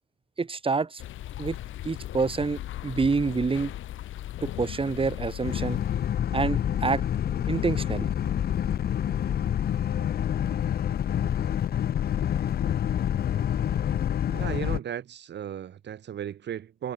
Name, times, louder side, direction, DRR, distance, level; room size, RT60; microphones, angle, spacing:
voice 1, 0.4-1.0 1.4-1.6 1.8-3.7 4.4-5.8 6.3-7.0 7.5-8.1, right 4 dB, 25° right, 2.2 m, -27 dB
sound 1, 1.0-6.1, left 13 dB, 80° left, 4.3 m, -38 dB
Boat Water vehicle, 5.4-14.8, left 10 dB, 50° left, 0.7 m, -27 dB
voice 2, 14.3-16.9, right 10 dB, 60° right, 3.0 m, -35 dB
cardioid pair, 90°, 20 cm